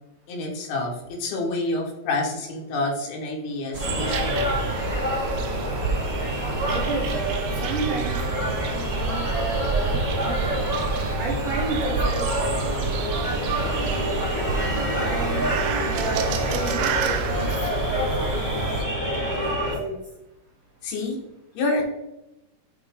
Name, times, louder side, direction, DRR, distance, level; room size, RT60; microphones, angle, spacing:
voice 1, 0.3-4.6 20.8-21.2 21.5-21.8, left 2 dB, 80° left, -1 dB, 3.3 m, -28 dB
sound 1, 3.7-18.8, right 5 dB, 90° right, 2.6 m, -29 dB
sound 2, 3.8-19.8, equal, 10° right, 0.8 m, -27 dB
voice 2, 6.7-10.7 11.2-14.5 15.0-19.5 19.8-20.0, right 3 dB, 75° right, -1 dB, 1.9 m, -32 dB
8.4 x 3.2 x 3.6 m, 0.90 s
omnidirectional pair, 4.4 m